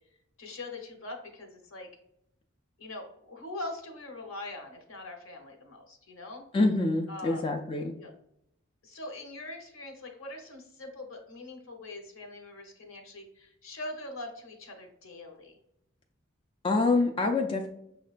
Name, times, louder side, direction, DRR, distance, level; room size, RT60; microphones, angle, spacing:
voice 1, 0.4-1.9 2.8-6.4 7.1-7.4 8.0-8.1 8.8-15.6, left 2 dB, 70° left, 3 dB, 0.9 m, -42 dB
voice 2, 6.5-8.0 16.6-17.7, left 3 dB, 25° left, 2 dB, 0.3 m, -26 dB
6.3 x 2.2 x 2.4 m, 0.75 s
head